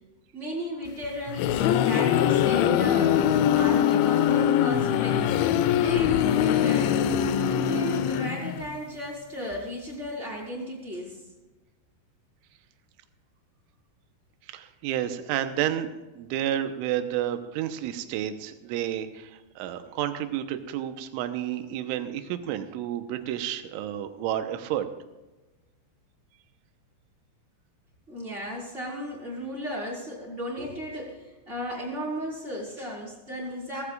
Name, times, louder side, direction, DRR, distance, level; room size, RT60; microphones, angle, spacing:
voice 1, 0.3-3.2 3.5-5.4 5.7-6.9 7.5-11.2 28.1-33.8, equal, 15° right, -4 dB, 4.1 m, -35 dB
sound 1, 1.0-8.8, left 10 dB, 85° left, 2.7 m, -23 dB
voice 2, 14.5-15.9 16.2-24.9, right 11 dB, 80° right, 8 dB, 3.3 m, -30 dB
19.5 x 16.0 x 2.5 m, 1.1 s
omnidirectional pair, 5.9 m